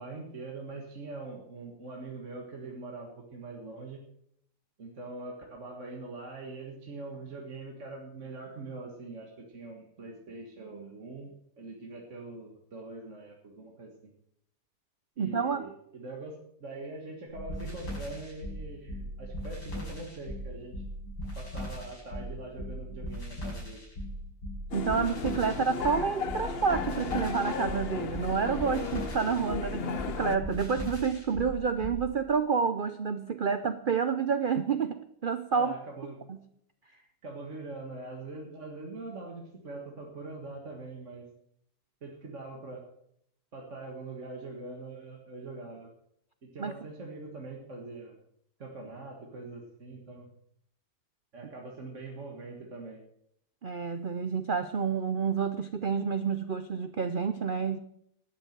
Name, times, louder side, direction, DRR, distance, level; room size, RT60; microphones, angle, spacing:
voice 1, 0.0-4.0 4.8-14.1 15.2-20.8 21.4-23.8 35.5-36.2 37.2-41.3 42.0-42.8 43.5-45.9 46.4-48.2 48.6-50.3 51.3-53.0, right 3 dB, 45° right, 0 dB, 2.0 m, -43 dB
voice 2, 15.2-15.6 24.7-35.7 46.6-46.8 53.6-57.8, right 6 dB, 90° right, 10 dB, 0.4 m, -29 dB
sound 1, 17.3-32.0, equal, 80° left, 7.1 m, -38 dB
sound 2, 24.7-30.4, left 7 dB, 45° left, 0.9 m, -35 dB
12.0 x 9.0 x 6.7 m, 0.72 s
omnidirectional pair, 1.8 m